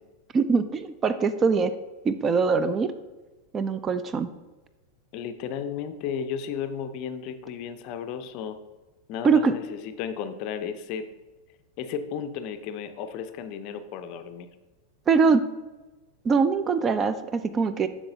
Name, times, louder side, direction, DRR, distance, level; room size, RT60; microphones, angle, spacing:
voice 1, 0.3-1.7 2.0-2.9 3.5-4.3 9.2-9.5 15.1-15.5 16.2-17.9, right 5 dB, 25° right, 12 dB, 0.4 m, -22 dB
voice 2, 5.1-8.6 9.1-11.1 11.8-14.5, left 7 dB, 40° left, 10 dB, 0.5 m, -34 dB
7.7 x 5.9 x 2.8 m, 1.2 s
figure-of-eight pair, 90°, 0 cm